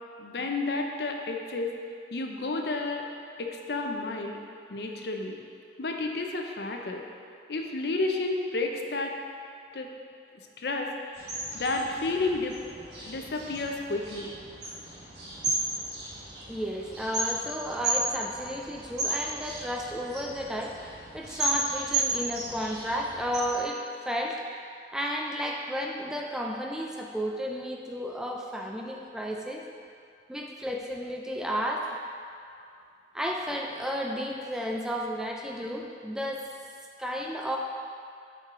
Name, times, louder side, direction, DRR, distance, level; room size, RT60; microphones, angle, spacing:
voice 1, 0.2-1.7 2.1-3.1 3.4-4.4 4.7-5.4 5.8-7.0 7.5-9.1 9.7-9.9 10.6-11.2 11.5-12.6 13.0-14.3, left 3 dB, 65° left, 2 dB, 0.6 m, -31 dB
sound 1, 11.1-23.5, right 2 dB, 75° right, 1.4 m, -34 dB
voice 2, 16.5-24.4 24.9-29.6 30.3-32.0 33.1-36.5 37.0-37.6, equal, 5° right, 0 dB, 0.3 m, -33 dB
7.8 x 4.6 x 3.7 m, 2.4 s
head